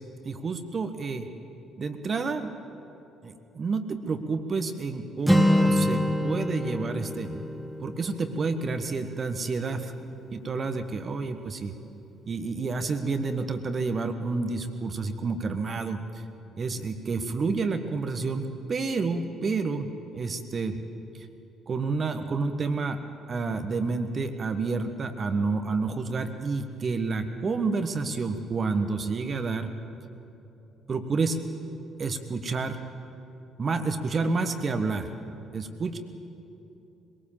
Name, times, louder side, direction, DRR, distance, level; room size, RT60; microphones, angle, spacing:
voice 1, 0.2-1.3 1.8-2.5 3.2-7.4 7.8-9.9 10.3-11.7 12.3-16.2 16.6-20.8 21.7-23.0 23.3-29.7 30.9-31.4 32.0-32.8 33.6-35.1 35.5-36.0, right 4 dB, 40° right, 8 dB, 1.5 m, -29 dB
Acoustic guitar, 5.2-9.2, left 1 dB, ahead, 2.3 m, -26 dB
22.0 x 18.0 x 7.3 m, 2.8 s
figure-of-eight pair, 50°, 0 cm